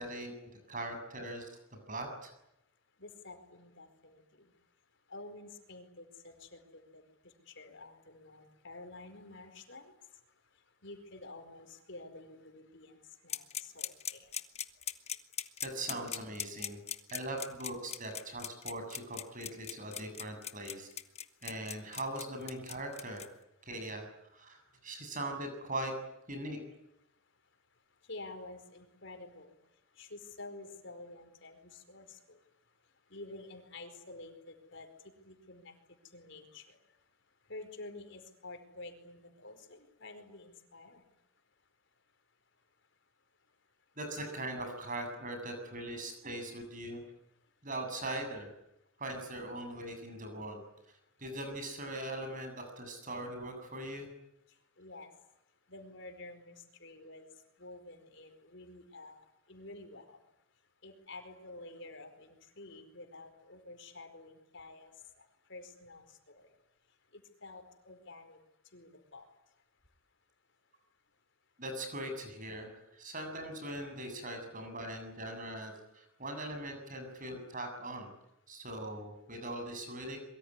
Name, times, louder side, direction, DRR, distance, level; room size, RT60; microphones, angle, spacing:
voice 1, 0.0-1.5 1.9-2.3 15.6-16.8 17.1-20.9 21.4-23.2 23.6-25.9 26.3-26.6 44.0-47.0 47.6-48.5 49.0-50.6 51.2-54.1 71.6-78.1 78.5-80.2, right 1 dB, 40° right, 6 dB, 7.5 m, -41 dB
voice 2, 3.0-4.2 5.1-7.0 7.5-9.9 10.8-14.3 28.1-29.5 30.0-32.4 33.1-34.9 35.2-35.7 36.1-36.8 37.5-41.0 54.8-55.1 55.7-57.3 57.6-60.2 60.8-65.2 65.5-66.5 67.1-68.4 68.7-69.2, left 2 dB, 60° left, 7 dB, 4.7 m, -50 dB
sound 1, 13.3-23.3, left 9 dB, 30° left, 1.3 m, -39 dB
24.5 x 23.0 x 9.8 m, 0.83 s
head